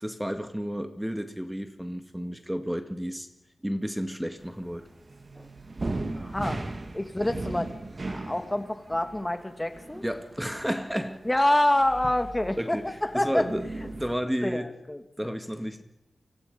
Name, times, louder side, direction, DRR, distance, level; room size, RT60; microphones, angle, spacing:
voice 1, 0.0-3.3 3.6-4.9 5.4-5.5 6.4-6.5 7.1-7.3 10.0-11.2 12.6-13.7 13.9-14.7 15.2-15.8, equal, 5° right, 2.0 m, -32 dB
sound 1, 4.4-14.1, right 2 dB, 45° right, 2.1 m, -38 dB
voice 2, 6.1-6.6 6.9-7.7 8.1-10.0 11.2-13.4 14.4-15.4, left 1 dB, 15° left, 2.6 m, -27 dB
29.5 x 25.0 x 5.4 m
wide cardioid pair, 80°, 0 cm